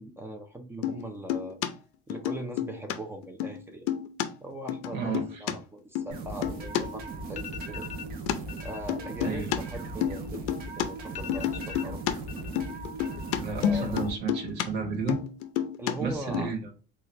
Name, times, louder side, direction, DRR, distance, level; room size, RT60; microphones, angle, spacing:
voice 1, 0.0-1.6 2.1-3.9 4.4-7.9 8.6-12.2 13.5-14.0 15.8-16.5, right 1 dB, 10° right, 3 dB, 0.6 m, -40 dB
sound 1, 0.8-1.0 1.3-1.7 2.1-2.9 3.2-3.6 3.9-4.3 4.7-5.5 5.9-6.1 6.4-6.8 8.3-8.4 8.9-9.6 9.8-10.9 11.3-12.1 12.4-14.6 14.9-15.9 16.3-16.4, left 10 dB, 90° left, 0.6 m, -29 dB
voice 2, 4.9-5.4 9.2-9.5 13.4-15.2 16.0-16.7, right 5 dB, 85° right, 2 dB, 1.3 m, -32 dB
sound 2, 6.1-14.1, right 3 dB, 45° right, 0.8 m, -38 dB
sound 3, 7.3-8.1 8.5-8.8 9.1-10.6 10.8-10.9 11.1-12.6 12.9-13.5 13.8-14.3, left 10 dB, 35° left, 0.6 m, -43 dB
4.2 x 2.4 x 3.2 m, 0.35 s
cardioid pair, 150°, 21 cm